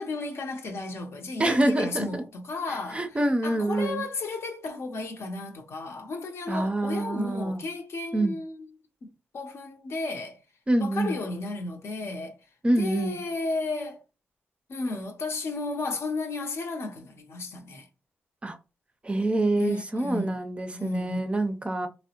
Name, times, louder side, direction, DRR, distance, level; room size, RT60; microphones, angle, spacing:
voice 1, 0.0-8.7 9.0-9.1 9.3-10.4 10.8-12.4 12.8-14.0 14.7-17.9 19.6-20.4 20.7-21.2, left 3 dB, 60° left, 0.7 m, -34 dB
voice 2, 1.4-2.1 2.9-4.0 6.5-7.6 8.1-8.3 10.7-11.2 12.6-13.2 18.4-18.6 19.0-21.9, right 1 dB, 20° right, 0.4 m, -26 dB
3.3 x 2.0 x 2.8 m
cardioid pair, 65°, 5 cm